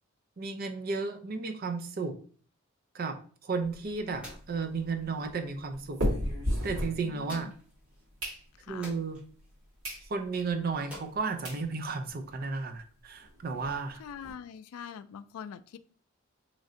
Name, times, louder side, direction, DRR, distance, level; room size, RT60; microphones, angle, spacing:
voice 1, 0.4-2.2 2.9-6.0 6.6-7.5 8.7-9.2 10.0-14.0, right 4 dB, 45° right, 7 dB, 0.4 m, -33 dB
sound 1, 3.4-12.4, equal, 5° right, 0.9 m, -54 dB
sound 2, 3.6-7.6 7.9-8.9 9.4-9.5 9.8-10.1 10.5-10.6 11.1-11.2 11.4-11.6 12.1-12.2 12.3-12.5 12.8-12.9 13.2-14.3, equal, 75° right, 1.8 m, -35 dB
voice 2, 7.0-7.5 8.6-9.0 14.0-15.8, left 7 dB, 85° left, 13 dB, 0.3 m, -44 dB
3.2 x 2.5 x 3.7 m, 0.43 s
head